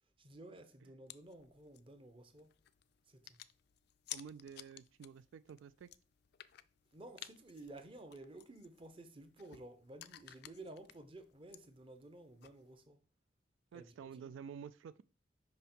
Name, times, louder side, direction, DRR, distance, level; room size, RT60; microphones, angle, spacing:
voice 1, 0.2-2.5 3.1-3.4 6.9-13.0 13.7-14.3, right 2 dB, 30° right, 0.8 m, -54 dB
sound 1, 1.1-12.8, left 13 dB, 60° left, 0.4 m, -56 dB
voice 2, 4.1-5.9 13.7-15.0, right 7 dB, 85° right, 0.3 m, -50 dB
5.4 x 5.3 x 4.4 m
head